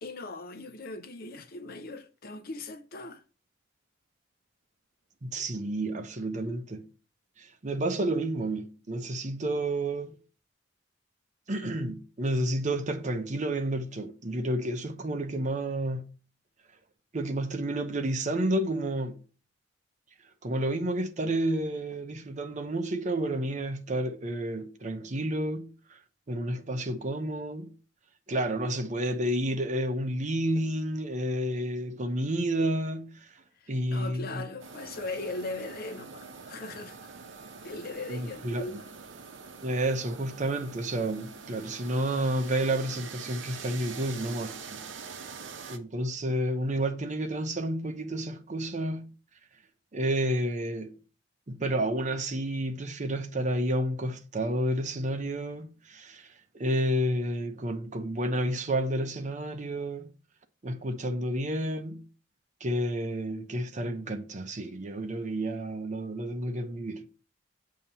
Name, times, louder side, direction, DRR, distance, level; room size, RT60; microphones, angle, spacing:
voice 1, 0.0-3.2 33.6-37.1 37.6-38.9, left 2 dB, 50° left, 0.6 m, -39 dB
voice 2, 5.2-6.9 7.4-10.1 11.5-16.1 17.1-19.2 20.4-26.0 26.3-27.7 28.3-33.4 33.7-34.4 38.1-38.8 39.6-44.8 45.7-49.1 49.9-51.0 51.5-60.1 60.6-62.1 62.6-67.1, right 1 dB, 40° right, 0.7 m, -30 dB
sound 1, 34.6-45.8, right 5 dB, 75° right, 0.7 m, -44 dB
7.3 x 2.8 x 5.4 m
head